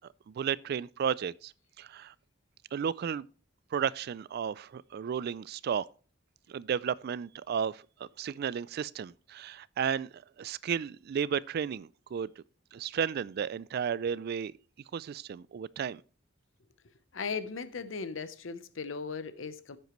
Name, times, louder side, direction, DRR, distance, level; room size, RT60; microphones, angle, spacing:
voice 1, 0.3-1.5 1.8-2.1 2.7-3.2 3.7-5.9 6.5-7.8 8.2-10.1 10.4-12.3 12.7-14.5 14.9-16.0, right 7 dB, 55° right, 0.3 m, -33 dB
voice 2, 17.1-19.8, left 5 dB, 75° left, 0.8 m, -37 dB
10.0 x 7.9 x 3.1 m
head